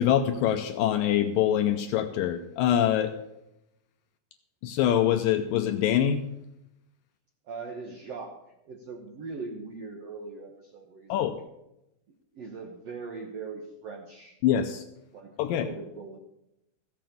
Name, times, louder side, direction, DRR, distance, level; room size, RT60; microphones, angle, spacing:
voice 1, 0.0-3.1 4.6-6.2 11.1-11.4 14.4-14.8 15.4-15.7, left 10 dB, 80° left, 8 dB, 2.0 m, -24 dB
voice 2, 7.4-8.4 8.6-11.3 12.3-14.4 15.1-16.2, right 4 dB, 70° right, 2 dB, 1.5 m, -40 dB
15.0 x 7.6 x 6.9 m, 0.87 s
omnidirectional pair, 4.5 m